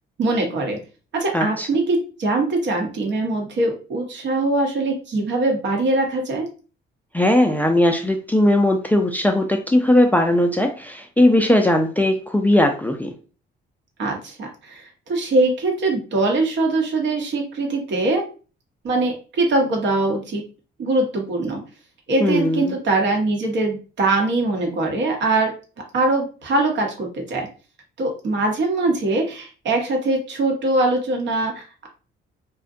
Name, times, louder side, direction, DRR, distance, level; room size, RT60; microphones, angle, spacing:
voice 1, 0.2-0.8 1.1-6.5 14.0-18.3 18.8-20.4 20.8-21.6 22.1-25.5 25.9-27.5 28.0-31.9, right 2 dB, 65° right, 2 dB, 0.8 m, -22 dB
voice 2, 1.3-1.7 7.1-13.1 22.2-22.7, left 1 dB, 10° left, 3 dB, 0.3 m, -18 dB
2.6 x 2.1 x 2.4 m, 0.36 s
cardioid pair, 90°, 20 cm